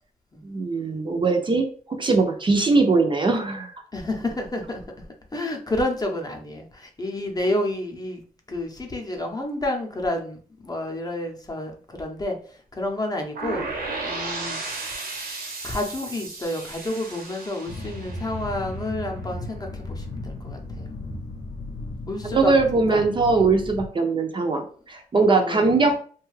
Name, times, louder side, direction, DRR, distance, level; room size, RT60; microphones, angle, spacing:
voice 1, 0.4-3.7 22.3-26.0, right 3 dB, 30° right, 4 dB, 0.5 m, -21 dB
voice 2, 3.9-4.8 5.3-8.2 8.5-13.7 14.0-14.6 15.6-20.9 22.1-22.5 22.9-23.0 25.4-25.8, left 1 dB, 25° left, 3 dB, 0.7 m, -30 dB
sound 1, 13.4-19.2, right 3 dB, 70° right, 0.8 m, -34 dB
sound 2, 17.7-23.9, left 2 dB, 80° left, 0.6 m, -35 dB
2.6 x 2.3 x 3.1 m, 0.43 s
cardioid pair, 85°, 15 cm